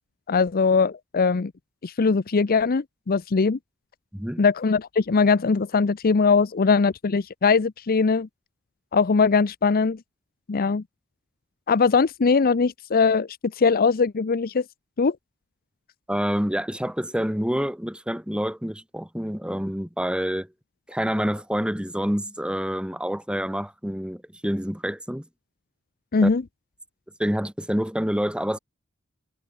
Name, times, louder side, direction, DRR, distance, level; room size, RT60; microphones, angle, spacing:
voice 1, 0.3-1.5 1.8-3.6 4.4-8.3 8.9-10.0 10.5-10.8 11.7-13.3 13.6-14.6 15.0-15.2 26.1-26.4, left 4 dB, 45° left, 0.6 m, -21 dB
voice 2, 4.1-4.4 16.1-20.5 20.9-25.3 26.2-26.3 27.2-28.6, equal, 5° right, 2.5 m, -27 dB
head